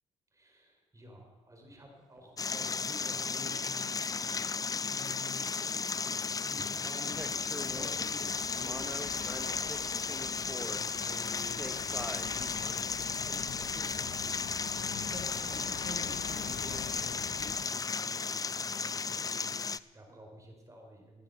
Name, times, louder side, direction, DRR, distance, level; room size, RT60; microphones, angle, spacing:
voice 1, 0.3-4.5 4.9-6.1 6.4-11.7 12.3-21.2, equal, 25° right, 2 dB, 4.2 m, -50 dB
sound 1, 2.2-2.3 7.1-8.1 8.6-10.8 11.5-12.3 13.1-13.2, equal, 5° right, 1.2 m, -43 dB
sound 2, 2.4-19.8, left 5 dB, 25° left, 0.4 m, -34 dB
sound 3, 7.1-17.7, left 8 dB, 70° left, 1.0 m, -46 dB
16.0 x 8.9 x 6.6 m, 1.3 s
cardioid pair, 75°, 13 cm